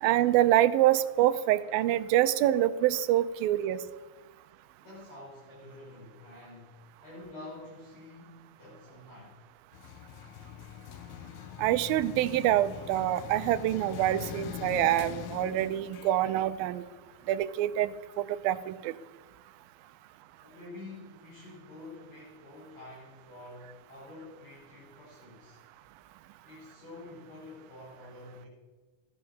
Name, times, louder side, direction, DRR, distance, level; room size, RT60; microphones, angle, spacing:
voice 1, 0.0-3.8 11.6-16.8 17.3-17.9 18.2-18.9, right 13 dB, 80° right, 13 dB, 2.4 m, -26 dB
voice 2, 4.8-9.4 20.4-25.6 26.4-28.5, left 2 dB, 45° left, -8 dB, 7.6 m, -48 dB
sound 1, 9.7-17.7, left 10 dB, 90° left, 2.7 m, -43 dB
14.5 x 11.5 x 7.1 m, 1.3 s
omnidirectional pair, 4.3 m